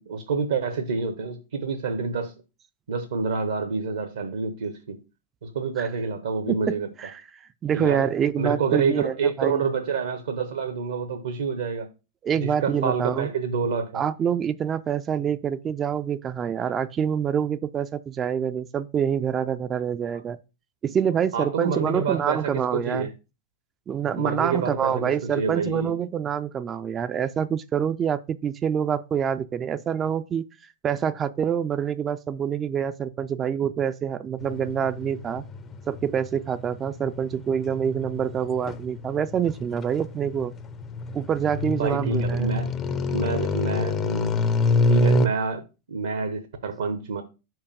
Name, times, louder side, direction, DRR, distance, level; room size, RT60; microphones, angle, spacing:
voice 1, 0.0-2.3 2.9-5.0 5.4-6.9 7.7-11.9 12.4-14.0 21.3-23.1 24.2-25.9 41.7-42.7 43.1-44.3 44.9-45.6 45.9-47.2, right 4 dB, 65° right, 0.8 m, -28 dB
voice 2, 6.5-7.2 7.6-9.6 12.2-13.3 13.9-20.4 20.8-23.1 23.9-30.4 30.8-35.4 35.9-40.5 41.1-42.5, right 8 dB, 25° right, 0.4 m, -26 dB
sound 1, 34.4-45.3, left 2 dB, 25° left, 0.5 m, -26 dB
5.1 x 4.6 x 5.0 m
figure-of-eight pair, 90°, 0 cm